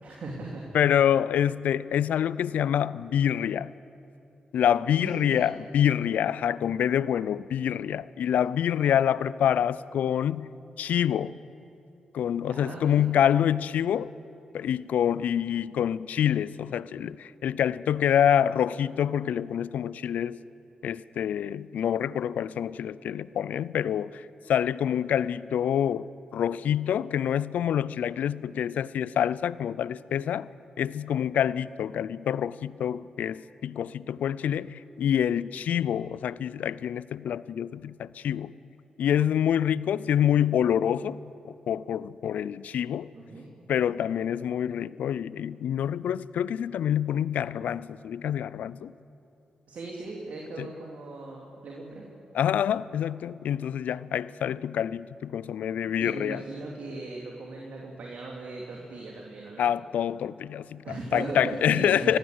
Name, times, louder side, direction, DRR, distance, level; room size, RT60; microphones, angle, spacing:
voice 1, 0.0-0.6 5.0-5.5 12.4-13.0 43.1-43.5 49.7-52.0 56.0-59.7 60.8-62.2, right 2 dB, 65° right, -2 dB, 2.9 m, -38 dB
voice 2, 0.7-3.7 4.5-10.5 10.8-11.3 12.1-14.1 14.5-20.4 20.8-30.5 30.8-38.5 39.0-41.2 41.4-43.1 43.7-48.9 50.6-50.7 52.3-56.4 59.6-60.8 61.1-62.2, left 9 dB, 75° left, 19 dB, 0.4 m, -26 dB
24.5 x 15.0 x 8.0 m, 2.9 s
hypercardioid pair, 40°, 3 cm